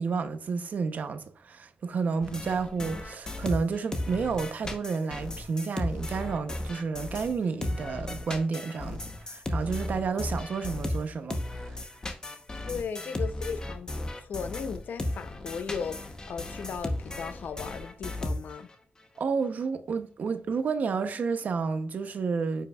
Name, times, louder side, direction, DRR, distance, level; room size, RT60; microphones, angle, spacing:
voice 1, 0.0-11.8 19.2-22.7, right 5 dB, 55° right, 0.7 m, -31 dB
sound 1, 2.2-7.3 7.6-18.7, left 1 dB, 20° left, 0.8 m, -35 dB
voice 2, 12.7-18.7, left 6 dB, 70° left, 0.5 m, -36 dB
9.2 x 5.6 x 2.3 m
wide cardioid pair, 170°, 3 cm